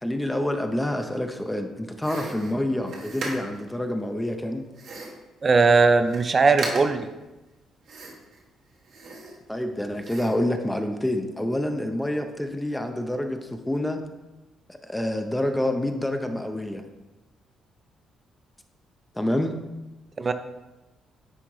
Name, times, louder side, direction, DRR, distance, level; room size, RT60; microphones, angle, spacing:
voice 1, 0.0-4.7 9.5-14.0 14.7-16.8 19.2-19.6, left 1 dB, 10° left, 6 dB, 0.6 m, -27 dB
sound 1, 2.0-3.7 4.7-5.3 5.7-5.8 6.0-6.3 6.6-7.1 7.9-8.4 8.8-9.7 10.0-10.5, right 3 dB, 70° right, 1.1 m, -37 dB
voice 2, 5.4-7.1 20.2-20.3, right 4 dB, 35° right, 10 dB, 0.5 m, -19 dB
9.8 x 3.4 x 3.1 m, 1.1 s
cardioid pair, 90°, 0 cm